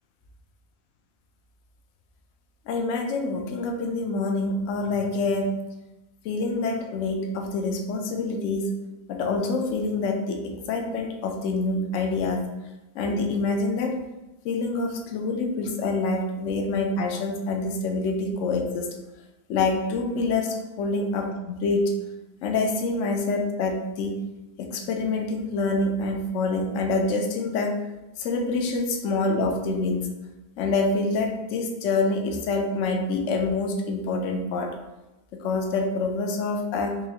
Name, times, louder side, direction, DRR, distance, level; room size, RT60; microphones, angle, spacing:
voice 1, 2.7-5.6 6.2-8.7 9.1-12.4 12.9-14.0 14.4-18.9 19.5-21.9 22.4-24.2 24.6-27.8 28.2-30.1 30.6-34.7 35.3-37.0, left 3 dB, 70° left, 3 dB, 0.7 m, -26 dB
4.5 x 2.7 x 2.8 m, 1.0 s
omnidirectional pair, 1.8 m